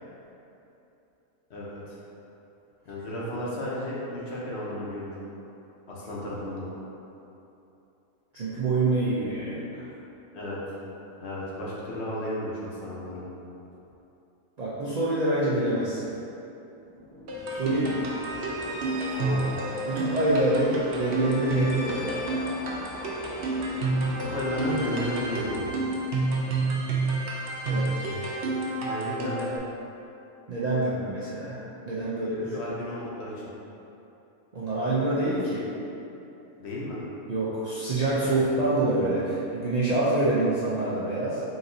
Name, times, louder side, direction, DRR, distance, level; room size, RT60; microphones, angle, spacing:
voice 1, 1.5-2.0 2.9-5.1 5.9-6.7 10.3-10.7 11.2-13.2 19.1-19.6 24.1-25.6 28.8-29.5 32.4-33.5 36.6-37.0 38.1-38.4, left 1 dB, 55° left, -6 dB, 1.0 m, -33 dB
voice 2, 8.3-9.9 14.6-16.1 17.5-18.1 19.9-22.2 27.6-27.9 30.5-31.6 31.9-32.6 34.5-35.7 37.3-41.4, right 2 dB, 80° right, -9 dB, 0.3 m, -26 dB
sound 1, 16.8-25.7, equal, 15° right, 1.1 m, -41 dB
sound 2, 17.3-29.6, right 2 dB, 55° right, 0.7 m, -30 dB
4.1 x 3.9 x 2.6 m, 2.9 s
omnidirectional pair, 1.5 m